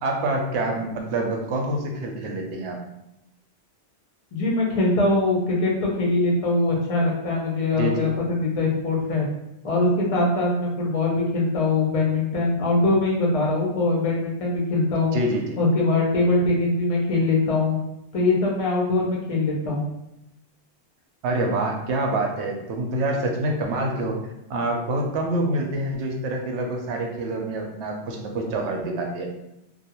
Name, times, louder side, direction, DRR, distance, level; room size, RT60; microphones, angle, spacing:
voice 1, 0.0-2.8 7.7-8.1 15.1-15.6 21.2-24.2 24.5-29.3, right 2 dB, 75° right, 2 dB, 0.8 m, -26 dB
voice 2, 4.3-9.3 9.6-15.2 15.6-17.8 18.1-19.8, left 2 dB, 40° left, -2 dB, 0.5 m, -22 dB
2.3 x 2.2 x 2.9 m, 0.87 s
omnidirectional pair, 1.2 m